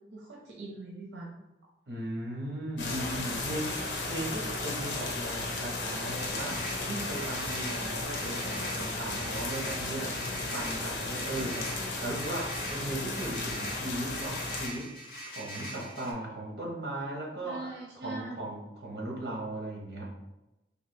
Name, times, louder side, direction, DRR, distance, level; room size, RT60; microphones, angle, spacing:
voice 1, 0.1-1.3 17.4-18.4, right 3 dB, 85° right, -2 dB, 0.7 m, -42 dB
voice 2, 1.9-14.9 15.3-20.2, right 1 dB, 60° right, -1 dB, 1.1 m, -37 dB
sound 1, 2.8-14.7, left 2 dB, 85° left, 0.9 m, -35 dB
sound 2, 6.1-16.1, equal, 50° left, 1.0 m, -43 dB
sound 3, 7.0-12.4, left 2 dB, 10° right, 1.3 m, -50 dB
3.5 x 2.8 x 4.3 m, 0.96 s
head